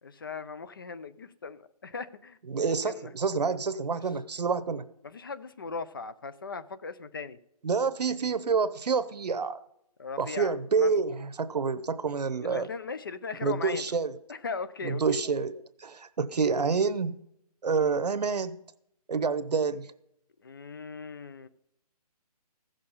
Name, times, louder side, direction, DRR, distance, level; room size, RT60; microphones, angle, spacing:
voice 1, 0.0-2.4 2.7-3.1 5.0-7.4 10.0-10.9 12.4-13.9 14.3-15.2 20.4-21.5, left 4 dB, 35° left, 14 dB, 0.4 m, -38 dB
voice 2, 2.5-4.8 7.6-9.6 10.2-12.7 13.4-14.1 14.8-17.2 17.6-18.6 19.1-19.9, right 5 dB, 90° right, 13 dB, 0.9 m, -28 dB
15.5 x 6.7 x 5.5 m, 0.79 s
hypercardioid pair, 170°, 20 cm